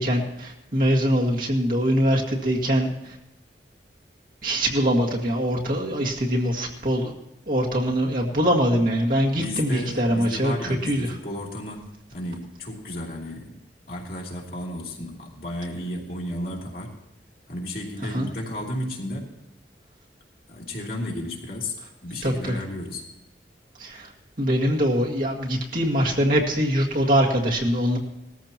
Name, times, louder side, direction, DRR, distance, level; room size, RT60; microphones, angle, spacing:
voice 1, 0.0-2.9 4.4-7.1 7.5-10.5 10.8-11.2 18.1-18.3 22.2-22.6 23.8-24.1 24.4-28.0, equal, 50° right, -2 dB, 2.0 m, -23 dB
voice 2, 9.3-13.6 13.9-16.9 17.5-19.3 20.5-23.1, left 1 dB, 55° left, -2 dB, 3.0 m, -33 dB
19.0 x 14.0 x 3.0 m, 0.89 s
head